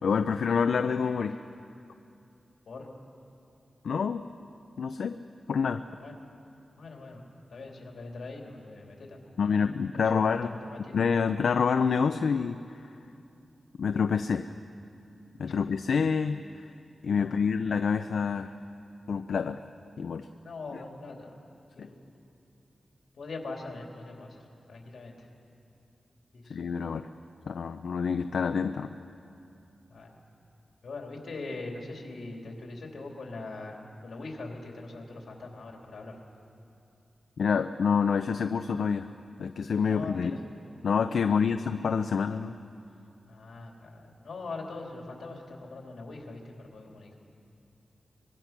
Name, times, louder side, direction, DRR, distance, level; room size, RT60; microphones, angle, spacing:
voice 1, 0.0-1.4 3.8-4.2 4.8-5.2 5.5-5.8 9.4-10.5 10.8-12.6 13.8-14.5 15.4-16.6 17.0-18.5 19.1-19.6 20.0-20.3 20.7-20.8 21.8-21.9 26.5-27.1 27.5-28.9 37.4-39.1 39.4-40.3 40.8-42.6, left 6 dB, 85° left, 8 dB, 0.5 m, -27 dB
voice 2, 6.8-7.2 7.5-9.2 10.0-11.0 15.4-15.5 17.2-17.4 20.4-21.4 21.7-22.1 23.2-24.4 24.7-25.1 26.3-26.6 29.9-30.1 30.8-33.8 34.0-36.1 39.8-40.4 41.3-41.4 43.3-47.2, left 3 dB, 70° left, 0 dB, 3.3 m, -42 dB
24.0 x 22.5 x 6.0 m, 2.6 s
wide cardioid pair, 165°, 0 cm